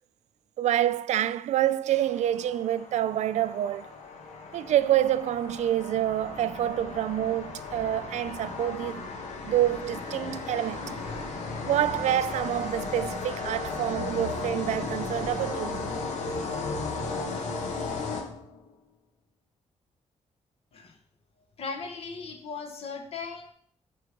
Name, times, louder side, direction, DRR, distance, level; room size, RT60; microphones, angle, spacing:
voice 1, 0.6-3.9 4.5-9.1 9.4-10.8 11.6-15.9, right 12 dB, 80° right, 0.4 m, -27 dB
sound 1, 1.9-18.7, left 3 dB, 85° left, 1.2 m, -35 dB
voice 2, 21.6-23.5, left 4 dB, 60° left, 1.1 m, -37 dB
6.5 x 4.7 x 5.3 m
wide cardioid pair, 170°, 12 cm